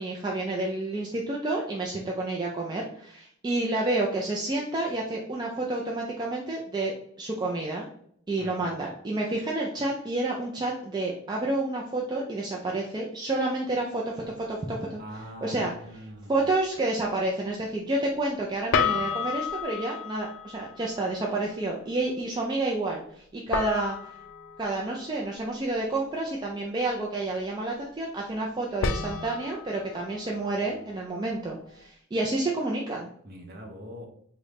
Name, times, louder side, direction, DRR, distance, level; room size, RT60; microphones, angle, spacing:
voice 1, 0.0-7.9 8.3-15.0 15.4-15.7 16.3-24.1 24.6-33.1, right 2 dB, 20° right, -2 dB, 0.3 m, -29 dB
voice 2, 8.4-8.7 15.0-16.4 33.2-34.1, equal, 45° right, 1 dB, 0.7 m, -43 dB
sound 1, 14.2-14.4 18.7-21.1 23.5-26.0 28.8-31.9, left 6 dB, 70° left, 0.3 m, -33 dB
3.6 x 2.1 x 3.3 m, 0.66 s
head